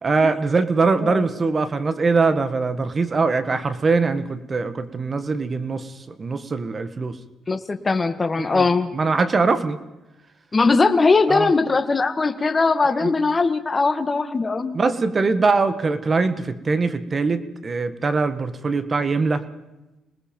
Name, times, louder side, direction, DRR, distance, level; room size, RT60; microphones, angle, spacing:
voice 1, 0.0-7.2 8.4-9.8 11.3-11.5 12.9-13.1 14.7-19.4, right 4 dB, 35° right, 12 dB, 1.5 m, -22 dB
voice 2, 7.5-8.9 10.5-14.8, left 4 dB, 30° left, 10 dB, 1.6 m, -20 dB
27.0 x 20.0 x 5.3 m, 1.0 s
cardioid pair, 90°, 0 cm